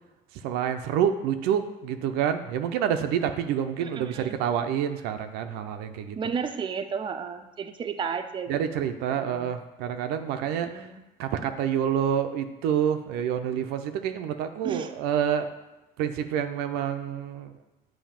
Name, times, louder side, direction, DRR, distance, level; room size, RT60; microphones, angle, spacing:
voice 1, 0.4-6.2 8.5-10.7 11.2-15.5 16.0-17.5, right 9 dB, 85° right, 8 dB, 0.5 m, -27 dB
voice 2, 3.8-4.4 6.2-9.6 10.5-11.0 14.6-14.9, right 6 dB, 30° right, 7 dB, 0.5 m, -34 dB
7.1 x 2.7 x 5.7 m, 1.0 s
cardioid pair, 100°, 16 cm